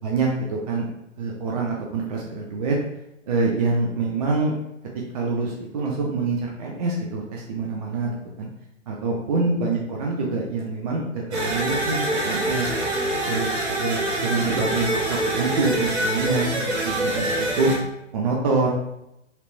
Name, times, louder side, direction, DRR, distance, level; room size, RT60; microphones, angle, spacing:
voice 1, 0.0-0.8 1.2-2.8 3.3-4.5 5.1-8.1 8.4-8.5 8.9-12.7 13.3-13.5 13.8-17.7 18.1-18.7, right 3 dB, 35° right, -2 dB, 0.5 m, -25 dB
sound 1, 11.3-17.8, right 1 dB, 60° right, 1.0 m, -25 dB
4.2 x 3.1 x 2.5 m, 0.84 s
figure-of-eight pair, 120°, 37 cm